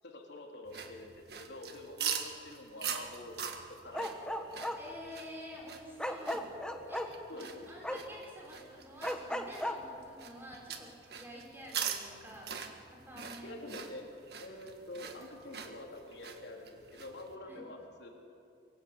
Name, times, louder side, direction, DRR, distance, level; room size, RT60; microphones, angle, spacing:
voice 1, 0.0-3.5 3.8-4.4 6.7-6.9 7.3-8.0 13.4-14.1 14.4-18.1, left 1 dB, 75° left, 1 dB, 3.5 m, -47 dB
sound 1, 0.7-17.3, right 7 dB, 60° right, 1.7 m, -43 dB
Bark, 3.9-4.8 6.0-7.1 7.8-8.0 9.0-9.8, equal, 5° left, 1.4 m, -35 dB
voice 2, 4.8-6.5 6.9-7.0 7.3-12.5 12.9-13.6 17.5-17.6, equal, 15° right, -2 dB, 5.4 m, -49 dB
24.0 x 23.5 x 8.0 m, 2.6 s
head